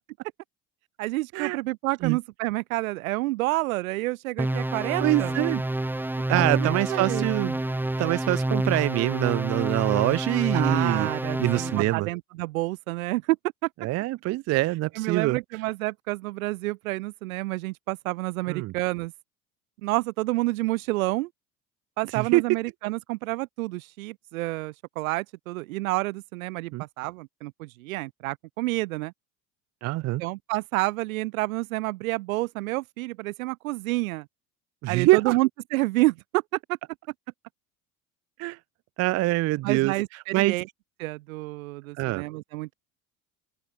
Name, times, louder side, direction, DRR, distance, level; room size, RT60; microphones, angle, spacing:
voice 1, 1.0-5.4 6.3-7.3 10.5-13.4 14.9-19.1 19.8-21.3 22.0-29.1 30.2-34.3 34.9-36.4 39.6-40.7 41.0-42.7, right 20 dB, 70° right, 1.6 m, -29 dB
sound 1, 4.4-11.9, right 1 dB, 5° right, 1.1 m, -28 dB
voice 2, 5.0-5.6 6.3-7.6 8.0-11.1 11.4-12.1 13.8-15.4 18.5-18.7 22.1-22.4 26.7-26.8 29.8-30.2 34.8-35.4 38.4-38.6 39.0-40.0 40.3-40.5 42.0-42.2, right 19 dB, 40° right, 0.5 m, -24 dB
open air
hypercardioid pair, 65°, 42 cm